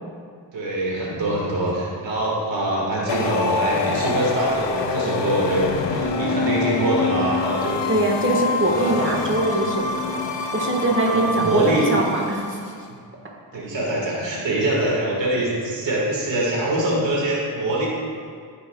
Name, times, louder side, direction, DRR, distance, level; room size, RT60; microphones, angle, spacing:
voice 1, 0.5-7.8 8.5-9.2 11.0-11.9 13.5-17.9, right 1 dB, 90° right, -4 dB, 1.8 m, -24 dB
sound 1, 3.1-12.7, left 4 dB, 75° left, 0.8 m, -26 dB
voice 2, 7.9-12.6, right 2 dB, 30° right, -1 dB, 1.4 m, -22 dB
13.5 x 5.3 x 2.3 m, 2.2 s
cardioid pair, 60°, 43 cm